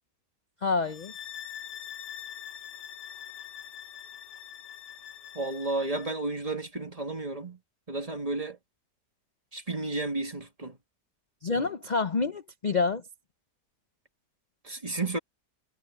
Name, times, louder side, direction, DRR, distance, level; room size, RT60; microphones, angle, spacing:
voice 1, 0.6-1.1 11.4-13.0, left 4 dB, 45° left, 0.6 m, -27 dB
sound 1, 0.8-6.2, left 10 dB, 85° left, 1.7 m, -44 dB
voice 2, 5.4-7.6 7.9-8.6 9.5-10.8 14.6-15.2, right 2 dB, 20° right, 2.1 m, -32 dB
omnidirectional pair, 1.8 m